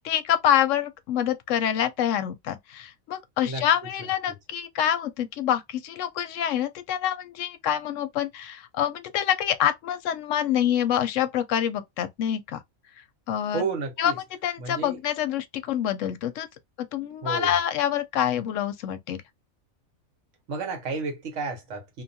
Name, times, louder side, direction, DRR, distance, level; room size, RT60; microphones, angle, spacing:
voice 1, 0.0-12.6 13.3-13.6 14.0-14.1 14.4-16.5 16.8-19.2, left 10 dB, 70° left, 0.9 m, -26 dB
voice 2, 13.5-14.2 14.6-15.0 17.2-17.5 20.5-22.0, right 4 dB, 70° right, 1.3 m, -31 dB
2.6 x 2.3 x 2.6 m
omnidirectional pair, 1.4 m